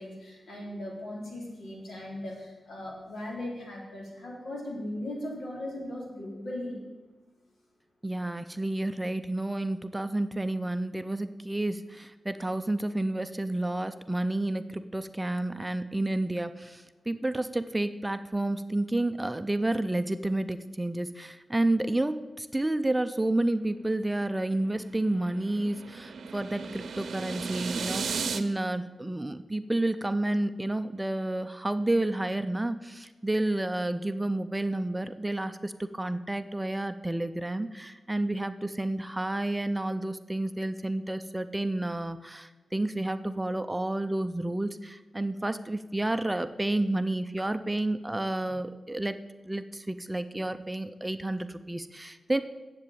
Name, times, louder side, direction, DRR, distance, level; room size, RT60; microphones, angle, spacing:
voice 1, 0.0-6.8, left 1 dB, 90° left, -3 dB, 3.4 m, -38 dB
voice 2, 8.0-49.2 49.4-52.4, right 1 dB, 10° right, 11 dB, 0.4 m, -30 dB
sound 1, 24.1-28.4, right 5 dB, 85° right, 0.6 m, -36 dB
7.7 x 7.7 x 8.6 m, 1.2 s
wide cardioid pair, 125°, 0 cm